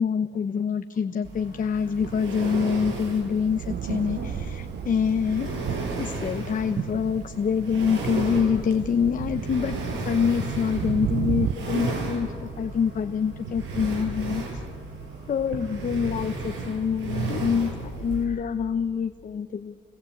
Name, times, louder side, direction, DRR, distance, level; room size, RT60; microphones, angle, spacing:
voice 1, 0.0-5.5 6.0-14.4 15.3-19.8, left 6 dB, 40° left, 9 dB, 0.9 m, -26 dB
sound 1, 1.2-18.2, right 3 dB, 90° right, 5.6 m, -34 dB
Thunder, 2.0-11.5, right 10 dB, 60° right, 0.6 m, -34 dB
30.0 x 18.5 x 8.6 m, 2.2 s
cardioid pair, 90°, 20 cm